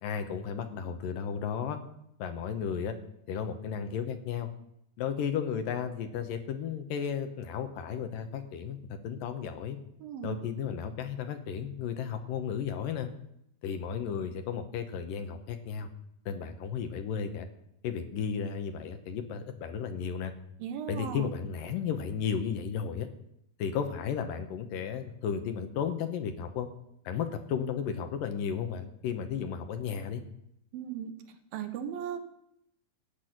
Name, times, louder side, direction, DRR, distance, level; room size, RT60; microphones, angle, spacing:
voice 1, 0.0-1.8 2.2-3.0 3.3-4.5 5.0-9.8 10.2-13.1 13.6-15.9 16.3-17.5 17.8-20.3 20.9-23.1 23.6-26.7 27.1-30.2, left 7 dB, 75° left, 7 dB, 2.5 m, -34 dB
voice 2, 10.0-10.5 20.6-21.3 30.7-31.1 31.5-32.2, right 9 dB, 85° right, 7 dB, 2.9 m, -37 dB
15.0 x 6.1 x 9.3 m, 0.77 s
omnidirectional pair, 4.2 m